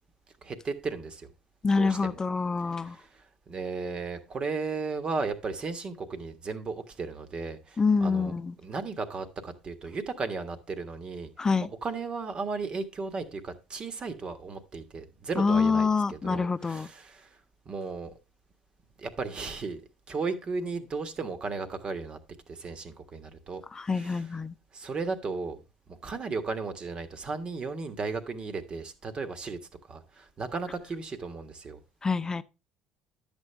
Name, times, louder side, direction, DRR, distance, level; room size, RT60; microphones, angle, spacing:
voice 1, 0.4-1.3 1.7-2.2 2.6-8.3 8.6-11.3 11.6-17.4 17.6-18.1 19.0-19.8 20.1-22.2 22.5-24.3 24.7-25.6 25.9-29.6 29.9-31.8, right 4 dB, 40° right, 1.5 m, -35 dB
voice 2, 1.6-3.0 7.8-8.5 11.4-11.7 15.4-16.9 23.8-24.5 32.0-32.4, left 4 dB, 25° left, 0.7 m, -26 dB
10.5 x 7.2 x 3.4 m
hypercardioid pair, 70°, 3 cm